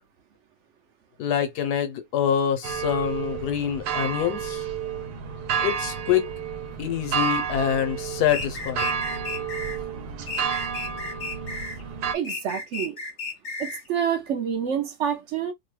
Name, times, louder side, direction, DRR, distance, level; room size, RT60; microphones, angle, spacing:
voice 1, 1.2-4.6 5.6-6.3 6.8-8.9, left 9 dB, 85° left, 1.3 m, -25 dB
sound 1, 2.6-12.1, right 7 dB, 85° right, 1.2 m, -30 dB
sound 2, 8.3-9.8 10.3-11.8 12.2-13.9, left 3 dB, 65° left, 0.4 m, -34 dB
voice 2, 12.1-13.0 13.6-15.5, right 8 dB, 70° right, 0.7 m, -27 dB
2.9 x 2.1 x 3.1 m
omnidirectional pair, 1.6 m